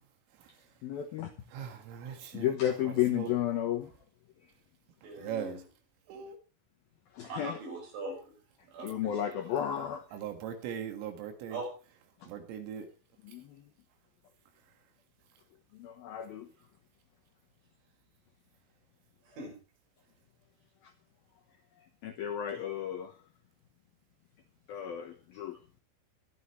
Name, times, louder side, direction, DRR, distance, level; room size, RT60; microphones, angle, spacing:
voice 1, 0.8-1.3 2.3-3.9 7.1-7.6 8.8-10.1 12.2-12.3 13.2-13.7 15.7-16.5 20.8-20.9 22.0-23.2 24.7-25.6, left 11 dB, 75° left, 2.2 m, -33 dB
voice 2, 1.5-2.5 2.8-3.3 5.2-5.6 6.1-6.4 10.1-11.6 12.3-12.9, right 8 dB, 80° right, 4.5 m, -40 dB
voice 3, 5.0-5.6 7.2-8.4 8.7-9.5 11.5-11.7 19.3-19.6, right 2 dB, 65° right, 8.2 m, -41 dB
23.0 x 11.5 x 3.2 m
omnidirectional pair, 5.9 m